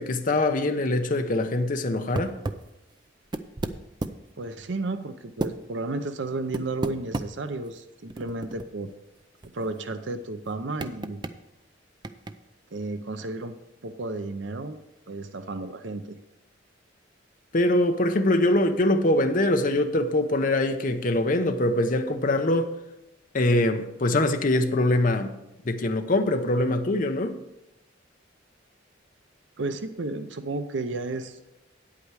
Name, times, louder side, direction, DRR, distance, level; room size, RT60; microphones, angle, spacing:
voice 1, 0.0-2.4 17.5-22.7 23.3-25.3 25.6-27.4, left 1 dB, 45° left, 0.7 m, -23 dB
sound 1, 2.2-2.7 3.2-4.3 5.4-5.5 6.5-7.3 7.6-7.7 8.1-8.9 9.2-9.3 9.4-9.6 10.8-11.3 12.0-12.3, right 2 dB, 25° right, 0.4 m, -31 dB
voice 2, 4.4-8.9 9.5-11.2 12.7-13.5 13.8-14.8 15.1-16.2 29.6-31.4, right 2 dB, 70° right, 0.7 m, -32 dB
9.3 x 8.5 x 4.7 m
head